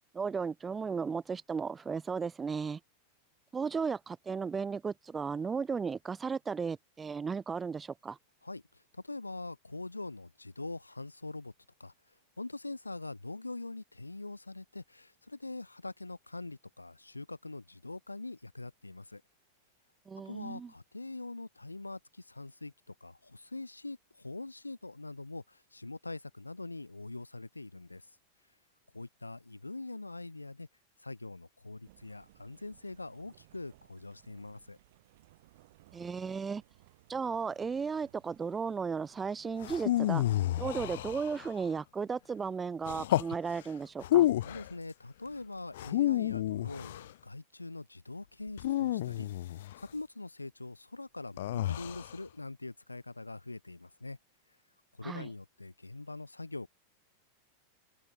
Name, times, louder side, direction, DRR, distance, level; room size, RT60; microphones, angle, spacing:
voice 1, 0.1-2.8 3.5-8.2 20.1-20.7 35.9-36.6 37.1-40.2 40.6-44.3 55.0-55.3, right 5 dB, 15° right, 1.4 m, -35 dB
voice 2, 8.4-11.5 11.8-11.9 12.4-19.2 20.3-28.1 28.9-30.7 31.0-34.8 44.4-54.2 54.9-56.7, left 2 dB, 80° left, 2.2 m, -43 dB
sound 1, 31.8-41.2, right 17 dB, 55° right, 7.2 m, -61 dB
sound 2, 39.6-41.6 42.9-43.4 44.0-44.7 45.7-47.1 48.6-49.8 51.4-52.1, left 14 dB, 55° left, 1.3 m, -30 dB
open air
figure-of-eight pair, 90°, 0 cm